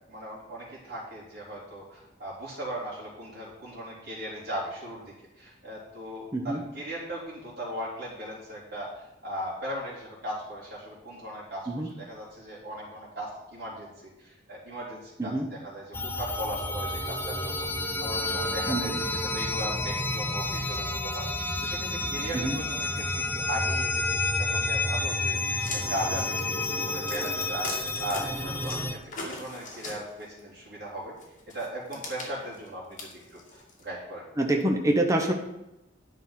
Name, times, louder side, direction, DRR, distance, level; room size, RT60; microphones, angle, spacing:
voice 1, 0.1-11.7 11.9-22.9 23.1-27.7 28.0-29.0 29.3-31.1 31.5-34.2, right 1 dB, 55° right, -8 dB, 3.6 m, -38 dB
sound 1, 15.9-28.9, left 2 dB, 10° left, 0.7 m, -30 dB
voice 2, 18.7-19.0 22.3-22.5 34.4-35.3, right 1 dB, 15° right, 2 dB, 1.0 m, -26 dB
sound 2, 25.6-28.2 28.6-30.4 31.2-33.8, left 2 dB, 40° left, 2.4 m, -40 dB
9.9 x 5.5 x 5.7 m, 0.91 s
head